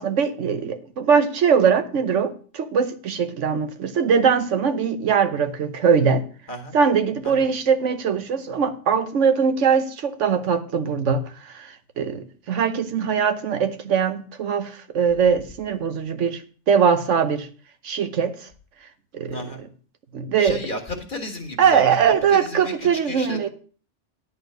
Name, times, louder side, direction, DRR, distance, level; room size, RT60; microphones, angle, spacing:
voice 1, 0.0-6.2 6.7-16.4 16.7-17.5 17.8-18.5 19.1-19.4 20.1-20.6 21.6-23.5, right 6 dB, 70° right, 1.2 m, -21 dB
voice 2, 19.3-19.6 20.4-21.8 22.3-23.5, left 2 dB, 40° left, 1.7 m, -33 dB
10.5 x 4.3 x 7.8 m
omnidirectional pair, 1.3 m